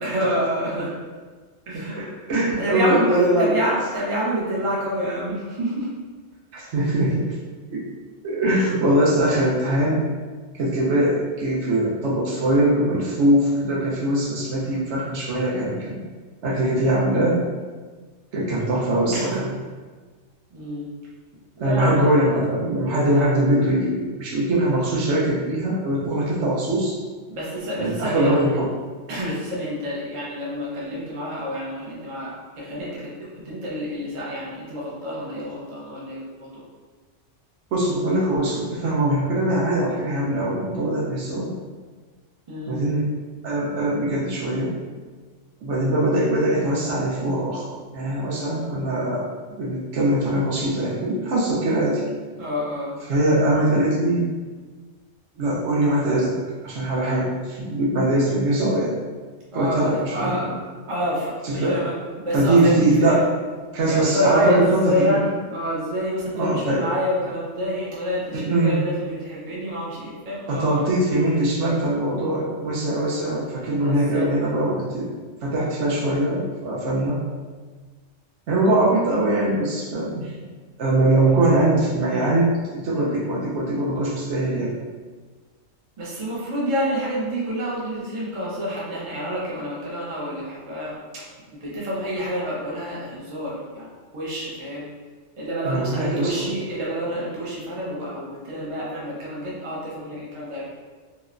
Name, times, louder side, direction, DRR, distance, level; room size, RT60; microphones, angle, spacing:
voice 1, 0.0-0.9 1.7-2.2 2.6-5.9 19.1-19.5 20.5-20.8 21.6-22.1 23.0-23.3 27.3-28.4 29.1-33.0 33.4-36.6 42.5-42.8 52.3-53.0 59.5-60.5 60.9-63.2 63.8-70.9 73.5-74.3 86.0-93.9 94.1-94.9 95.4-100.6, equal, 35° right, -6 dB, 0.5 m, -28 dB
voice 2, 1.9-3.6 6.5-7.4 7.7-7.8 8.2-10.1 10.6-16.0 16.4-17.4 18.3-19.4 21.6-27.0 27.8-28.7 37.7-41.5 42.7-43.1 43.4-44.8 45.6-52.0 53.1-54.3 55.4-58.9 59.5-60.5 61.4-61.8 62.3-63.2 63.7-65.2 66.3-66.9 68.3-68.8 70.5-75.1 75.4-77.2 78.5-80.3 80.8-84.7 95.6-96.5, right 1 dB, 70° right, -4 dB, 0.9 m, -22 dB
3.0 x 2.1 x 2.4 m, 1.4 s
omnidirectional pair, 1.3 m